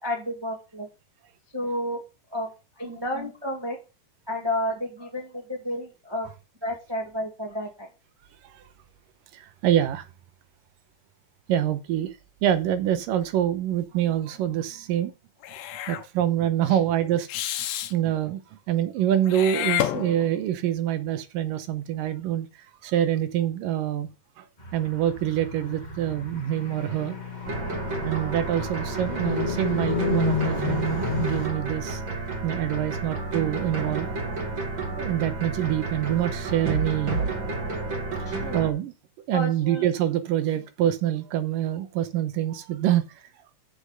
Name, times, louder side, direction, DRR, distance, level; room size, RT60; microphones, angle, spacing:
voice 1, 0.0-0.9 1.5-2.0 2.3-2.5 2.8-3.8 4.3-6.3 6.6-7.9 16.7-16.8 38.2-38.6 39.3-39.9, left 1 dB, 10° right, 1.7 m, -31 dB
voice 2, 9.3-10.1 11.5-12.2 12.4-15.1 15.9-17.3 17.9-22.5 22.8-24.1 24.4-24.5 24.7-27.2 28.0-32.0 32.4-34.1 35.0-37.2 38.2-38.9 39.3-43.0, right 11 dB, 75° right, 2.4 m, -26 dB
Meow / Hiss, 15.4-16.0 17.3-17.9 19.3-20.5, left 13 dB, 75° left, 2.3 m, -29 dB
Car, 24.6-31.5, left 5 dB, 25° left, 1.0 m, -31 dB
sound 1, 27.4-38.7, right 3 dB, 35° right, 2.6 m, -31 dB
8.5 x 6.6 x 6.8 m
omnidirectional pair, 4.2 m